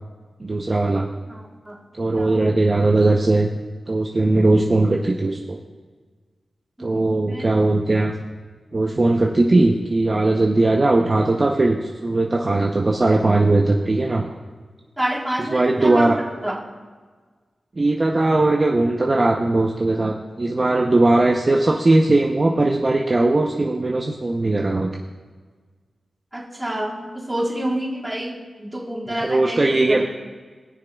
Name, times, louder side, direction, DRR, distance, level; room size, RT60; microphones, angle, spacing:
voice 1, 0.4-1.1 2.0-3.5 3.9-5.6 6.8-8.1 8.7-14.3 15.4-16.2 17.8-24.9 29.2-30.0, right 2 dB, 40° right, 0 dB, 0.7 m, -19 dB
voice 2, 1.3-1.8 2.1-2.5 6.8-7.5 15.0-16.6 26.3-30.0, right 1 dB, 15° right, -5 dB, 2.2 m, -28 dB
20.0 x 6.7 x 2.3 m, 1.5 s
wide cardioid pair, 70°, 0 cm